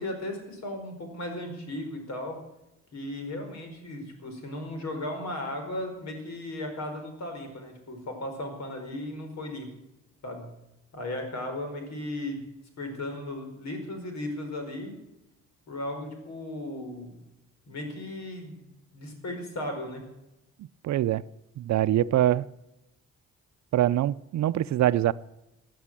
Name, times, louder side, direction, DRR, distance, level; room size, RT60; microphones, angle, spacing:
voice 1, 0.0-2.4 2.9-9.7 10.2-10.5 10.9-12.4 12.8-15.0 15.7-17.1 17.7-18.7 18.9-20.1, left 1 dB, 60° left, 4.9 m, -36 dB
voice 2, 20.8-21.2 21.6-22.5 23.7-25.1, right 12 dB, 65° right, 0.6 m, -24 dB
16.5 x 9.3 x 7.5 m
cardioid pair, 90°, 30 cm